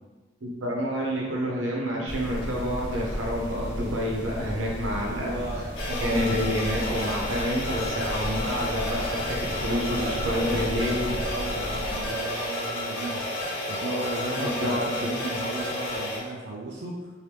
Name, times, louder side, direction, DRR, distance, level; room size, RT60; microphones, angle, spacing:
voice 1, 0.4-5.6 6.0-11.1 14.4-15.1, equal, 90° right, -3 dB, 0.9 m, -28 dB
sound 1, 2.1-12.1, equal, 5° right, 1.0 m, -35 dB
voice 2, 4.8-5.7 9.5-13.2 13.7-17.1, right 2 dB, 55° right, -3 dB, 0.4 m, -35 dB
sound 2, 5.7-16.2, left 1 dB, 70° left, 0.8 m, -31 dB
3.1 x 2.7 x 3.3 m, 1.3 s
head